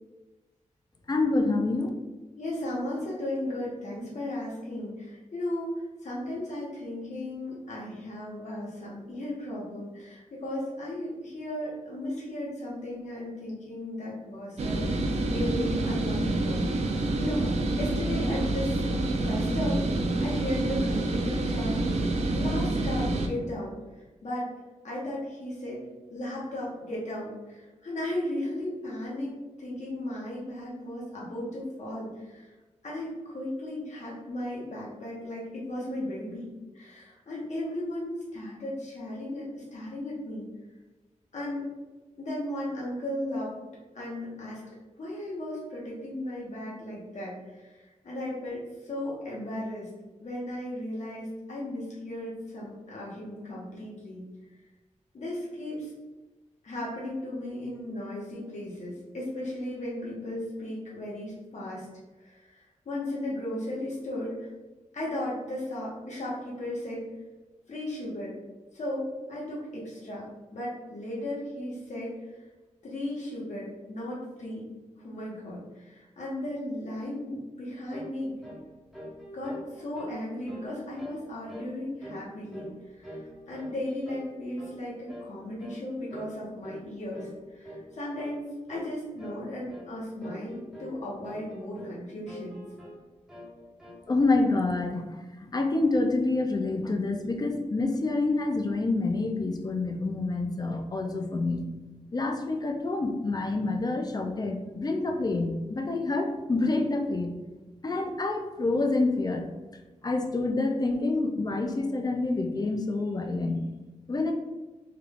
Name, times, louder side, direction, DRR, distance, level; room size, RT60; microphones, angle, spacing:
voice 1, 1.1-1.9 94.1-101.6 102.1-107.3 107.8-109.5 110.0-113.6 114.1-114.3, left 2 dB, 30° left, 4 dB, 0.4 m, -27 dB
voice 2, 2.4-16.7 17.2-18.8 19.2-19.9 20.2-21.8 22.3-23.8 24.2-24.5 24.8-25.8 26.1-32.6 32.8-40.5 41.3-41.7 42.2-43.6 43.9-44.6 45.0-49.9 50.2-54.3 55.1-55.9 56.6-61.9 62.2-64.5 64.9-67.0 67.7-68.3 68.7-70.3 70.5-72.1 72.4-72.5 72.8-74.6 74.9-78.4 79.3-92.6, left 1 dB, 65° left, -6 dB, 0.9 m, -36 dB
sound 1, 14.6-23.3, right 2 dB, 60° right, 0.4 m, -27 dB
sound 2, 77.9-78.2 78.4-78.7 78.9-80.2 80.5-80.7 81.0-81.2 81.5-81.7 82.0-82.8 83.0-83.8 84.0-84.3 84.6-84.8 85.1-85.3 85.6-85.8 86.1-86.4 86.6-86.8 87.1-87.4 87.6-87.9 88.2-88.4 88.7-88.9 89.2-89.4 89.7-89.9 90.2-91.0 91.2-92.0 92.3-93.0 93.3-94.0, equal, ahead, 1.0 m, -44 dB
3.6 x 2.3 x 3.5 m, 1.2 s
wide cardioid pair, 150°, 13 cm